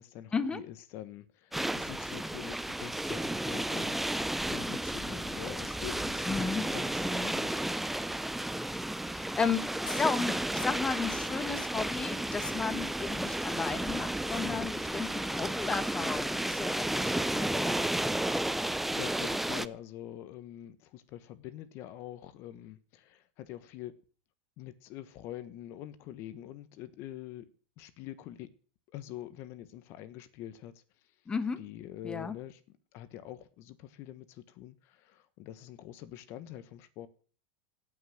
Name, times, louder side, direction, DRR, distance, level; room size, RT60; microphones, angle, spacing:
voice 1, 0.0-7.8 18.5-24.0 24.6-27.5 27.8-28.5 28.9-30.8 31.6-32.6 32.9-37.1, left 12 dB, 55° left, 1.3 m, -45 dB
sound 1, 1.5-19.7, right 1 dB, 5° right, 0.6 m, -33 dB
voice 2, 6.3-6.6 7.0-7.3 9.0-17.8 31.3-31.6 32.0-32.4, left 5 dB, 20° left, 1.1 m, -34 dB
17.0 x 6.0 x 6.6 m
supercardioid pair, 120°, 5 cm